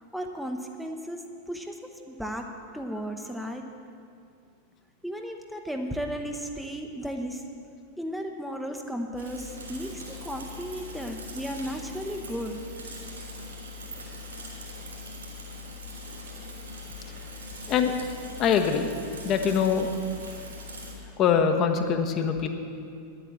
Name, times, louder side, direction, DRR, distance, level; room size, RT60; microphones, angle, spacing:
voice 1, 0.1-1.2 1.5-3.7 5.0-7.4 8.0-12.6, equal, ahead, 3 dB, 0.7 m, -35 dB
Bicycle / Mechanisms, 9.1-20.9, left 2 dB, 75° right, 2.9 m, -41 dB
voice 2, 18.4-18.9 19.2-19.9 21.2-22.5, left 7 dB, 35° left, 6 dB, 0.9 m, -23 dB
10.0 x 8.3 x 7.2 m, 2.4 s
figure-of-eight pair, 90°, 0 cm